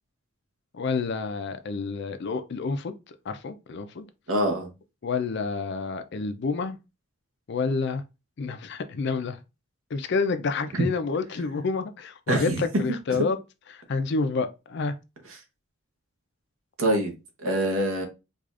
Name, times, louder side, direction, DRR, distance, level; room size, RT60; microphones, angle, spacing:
voice 1, 0.7-4.1 5.0-6.8 7.5-8.0 8.4-9.4 9.9-13.4 13.7-14.9, left 4 dB, 55° left, 0.4 m, -29 dB
voice 2, 4.3-4.7 10.7-10.8 12.3-12.6 16.8-17.1 17.4-18.1, right 1 dB, 70° right, 1.0 m, -24 dB
4.8 x 2.4 x 2.4 m
head